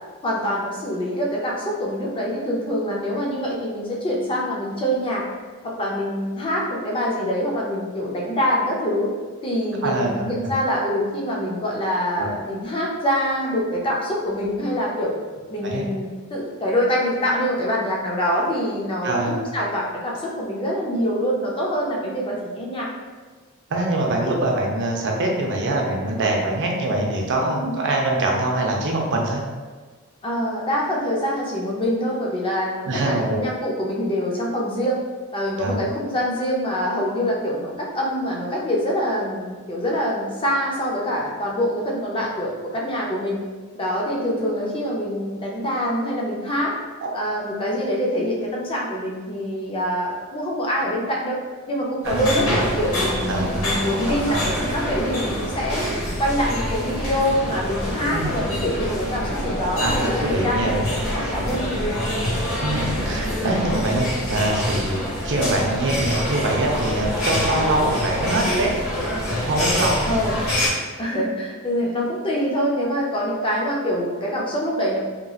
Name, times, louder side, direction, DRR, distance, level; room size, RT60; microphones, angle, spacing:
voice 1, 0.2-5.2 5.6-9.1 9.4-15.1 15.5-22.9 27.5-27.7 30.2-35.0 35.3-43.4 43.7-46.7 47.1-51.4 51.7-55.8 56.2-60.8 61.1-62.0 70.1-70.4 71.0-75.0, equal, 25° left, -3 dB, 0.5 m, -25 dB
voice 2, 9.8-10.5 12.2-12.3 15.6-15.8 19.0-19.4 23.7-29.4 32.9-33.4 35.6-35.9 47.0-47.2 52.0-52.4 53.3-53.7 54.1-54.4 58.1-58.3 59.8-60.8 62.6-68.7 69.5-70.1, right 2 dB, 55° right, 0 dB, 0.5 m, -24 dB
sound 1, 52.0-70.7, equal, 65° left, 0.9 m, -26 dB
2.9 x 2.7 x 2.3 m, 1.4 s
head